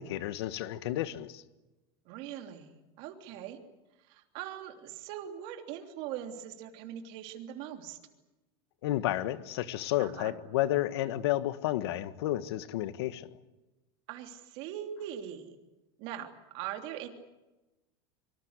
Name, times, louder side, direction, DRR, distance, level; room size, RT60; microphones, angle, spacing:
voice 1, 0.0-1.4 8.8-13.3, left 14 dB, 75° left, 1.6 m, -31 dB
voice 2, 2.0-3.6 4.0-8.0 10.0-10.3 14.1-15.6 16.0-17.1, right 10 dB, 45° right, 3.2 m, -41 dB
25.0 x 24.5 x 8.2 m
supercardioid pair, 175°, 14 cm